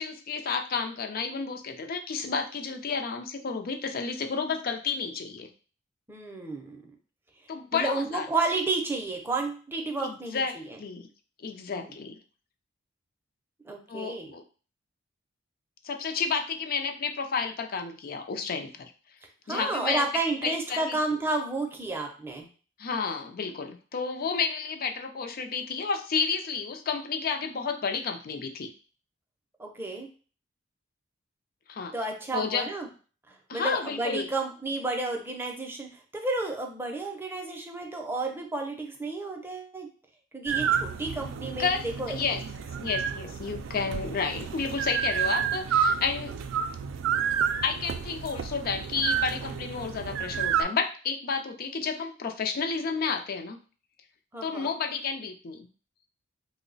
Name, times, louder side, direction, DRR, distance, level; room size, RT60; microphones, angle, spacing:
voice 1, 0.0-5.5 7.5-8.3 10.0-11.1 11.4-12.1 13.9-14.4 15.8-18.9 19.5-20.0 20.4-21.0 22.8-28.7 31.7-31.9 32.3-32.7 33.5-34.3 41.4-42.4 42.8-46.3 47.6-53.6 54.4-55.7, left 5 dB, 50° left, 5 dB, 0.4 m, -31 dB
voice 2, 6.1-6.8 7.7-10.8 11.7-11.9 13.7-14.3 19.5-22.5 29.6-30.1 31.9-32.9 33.3-39.9 40.3-41.7 42.0-42.1 54.3-54.7, right 3 dB, 10° right, 2 dB, 0.5 m, -31 dB
sound 1, 40.5-50.6, right 7 dB, 80° right, 0.3 m, -30 dB
3.0 x 2.0 x 3.8 m, 0.38 s
head